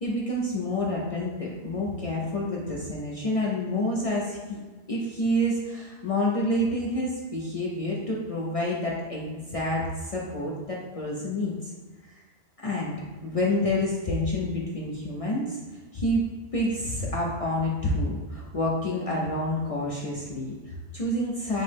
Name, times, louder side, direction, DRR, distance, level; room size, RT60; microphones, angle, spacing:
voice 1, 0.0-4.6 4.9-11.7 12.0-12.1 12.6-12.9 13.2-15.6 15.9-16.2 16.5-21.6, left 1 dB, 60° left, -4 dB, 0.3 m, -28 dB
5.9 x 2.1 x 3.3 m, 1.3 s
omnidirectional pair, 1.3 m